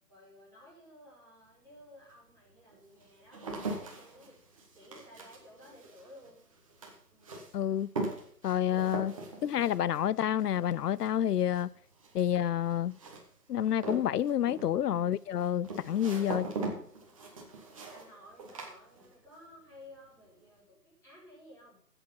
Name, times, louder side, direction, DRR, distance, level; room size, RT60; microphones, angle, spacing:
voice 1, 0.1-4.4 4.7-6.4 7.1-7.4 17.9-21.8, left 1 dB, 5° left, 4.4 m, -55 dB
sound 1, 1.5-1.6 2.3-19.5 19.7-20.3, right 2 dB, 20° right, 1.3 m, -41 dB
voice 2, 7.5-7.9 8.4-9.2 9.4-11.7 12.1-13.0 13.5-16.5, left 10 dB, 75° left, 0.5 m, -29 dB
12.0 x 8.0 x 5.8 m
hypercardioid pair, 170°, 48 cm